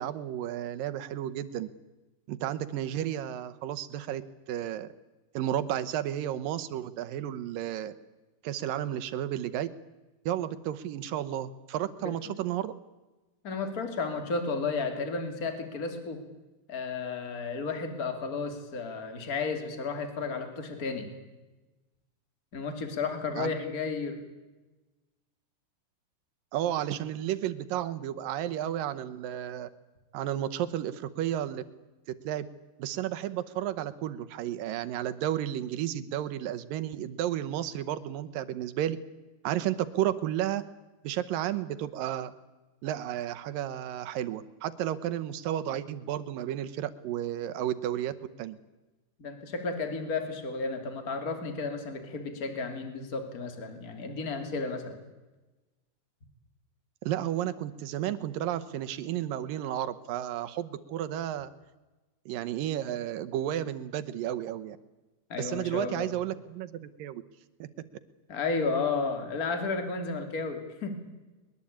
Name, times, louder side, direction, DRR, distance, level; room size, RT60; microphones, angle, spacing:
voice 1, 0.0-1.7 2.3-4.2 4.5-4.9 5.3-7.9 8.4-9.7 10.3-12.7 23.4-23.6 26.5-29.7 30.1-31.6 32.3-32.5 32.8-39.0 39.4-40.6 41.0-42.3 42.8-48.6 57.0-61.5 62.3-64.8 65.4-67.2 67.6-67.7, right 11 dB, 70° right, 11 dB, 2.3 m, -32 dB
voice 2, 13.4-16.2 16.7-21.1 22.5-24.2 49.2-55.0 65.3-66.1 68.3-71.0, left 4 dB, 25° left, 6 dB, 2.8 m, -33 dB
21.5 x 21.5 x 8.7 m, 1.1 s
omnidirectional pair, 4.7 m